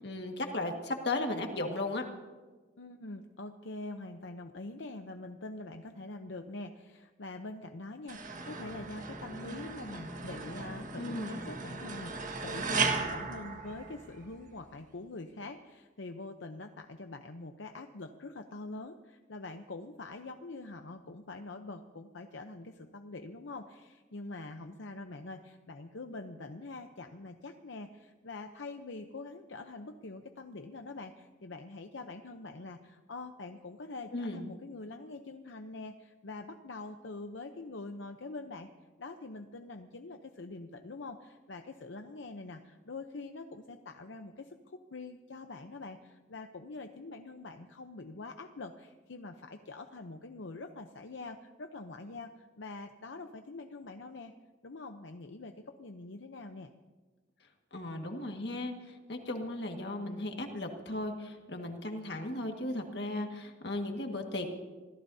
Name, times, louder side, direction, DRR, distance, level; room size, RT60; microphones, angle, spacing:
voice 1, 0.0-2.0 11.0-11.3 34.1-34.5 57.7-64.5, left 2 dB, 60° left, 3 dB, 1.8 m, -36 dB
voice 2, 2.8-38.7 39.0-54.3 54.6-56.7, left 2 dB, 80° left, 5 dB, 0.8 m, -44 dB
sound 1, 8.1-14.4, right 4 dB, 45° right, 1.7 m, -36 dB
26.0 x 17.0 x 2.8 m, 1.3 s
head